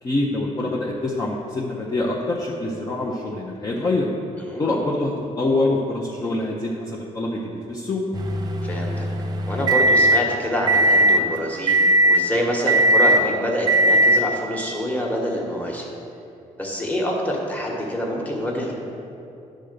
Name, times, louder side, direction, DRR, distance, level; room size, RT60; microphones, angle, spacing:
voice 1, 0.0-4.1 4.6-8.0, left 2 dB, 25° left, -3 dB, 0.7 m, -25 dB
sound 1, 8.1-10.2 10.7-11.2 11.7-12.2 12.7-13.2 13.7-14.2, right 1 dB, 30° right, 0.6 m, -18 dB
voice 2, 8.6-9.1 9.5-15.9 16.6-18.7, equal, 10° left, -2 dB, 1.2 m, -26 dB
10.0 x 3.8 x 6.6 m, 2.8 s
cardioid pair, 160°, 13 cm